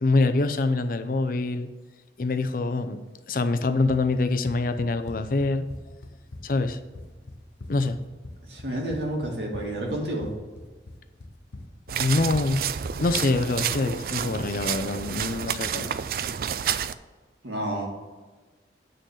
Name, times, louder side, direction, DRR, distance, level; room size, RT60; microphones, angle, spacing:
voice 1, 0.0-1.7 2.2-3.0 3.3-5.6 6.4-6.8 7.7-8.0 12.0-12.6 13.0-15.9, left 3 dB, 50° left, 9 dB, 0.5 m, -25 dB
Run, 3.6-13.0, left 2 dB, 85° left, 0.8 m, -43 dB
voice 2, 8.5-10.3 17.4-17.9, right 1 dB, 80° right, 0 dB, 1.9 m, -30 dB
sound 1, 11.9-16.9, right 8 dB, 55° right, 0.3 m, -30 dB
8.8 x 3.8 x 6.5 m, 1.3 s
head